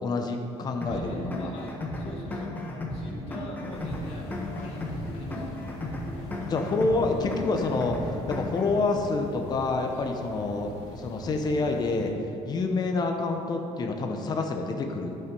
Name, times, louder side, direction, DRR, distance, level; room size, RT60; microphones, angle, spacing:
voice 1, 0.0-1.5 6.5-12.1 12.5-15.2, left 3 dB, 35° left, 4 dB, 0.8 m, -28 dB
sound 1, 0.8-8.8, left 1 dB, 15° left, 1.2 m, -35 dB
voice 2, 0.9-2.6 2.9-4.3 4.5-5.7, left 1 dB, 60° left, -3 dB, 2.1 m, -42 dB
sound 2, 3.7-12.1, left 1 dB, 75° left, 2.4 m, -43 dB
11.5 x 5.7 x 5.3 m, 2.9 s
cardioid pair, 135°, 12 cm